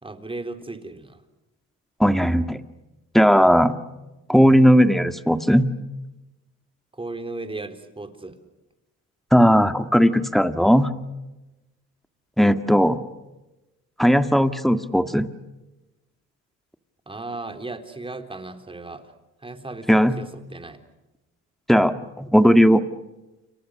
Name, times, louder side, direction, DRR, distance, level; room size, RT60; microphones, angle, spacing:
voice 1, 0.0-1.2 6.9-8.4 17.1-19.1 19.4-20.8, right 2 dB, 15° right, 7 dB, 3.8 m, -36 dB
voice 2, 2.0-2.6 3.1-3.8 4.3-5.7 9.3-10.9 12.4-13.0 14.0-15.3 19.9-20.2 21.7-22.8, equal, ahead, 9 dB, 1.8 m, -17 dB
29.5 x 29.0 x 6.5 m, 1.0 s
cardioid pair, 90°, 30 cm